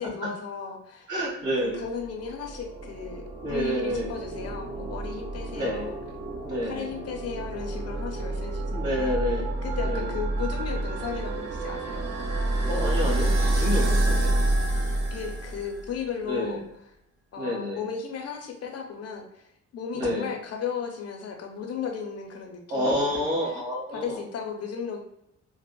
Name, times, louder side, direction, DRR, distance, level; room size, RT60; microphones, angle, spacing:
voice 1, 0.0-1.1 1.6-3.2 3.5-6.0 6.6-9.1 9.6-12.1 15.1-16.6 17.3-19.4 19.7-23.3 23.9-25.0, left 6 dB, 55° left, 3 dB, 0.6 m, -35 dB
voice 2, 1.1-1.8 3.4-4.1 5.5-5.9 6.4-6.9 8.7-9.6 9.8-10.1 12.7-14.4 16.2-16.6 17.4-17.9 19.9-20.3 22.7-24.2, equal, 85° right, -5 dB, 1.5 m, -29 dB
sound 1, 1.8-16.0, right 1 dB, 60° right, 0.6 m, -28 dB
3.3 x 2.0 x 2.2 m, 0.80 s
cardioid pair, 90°, 30 cm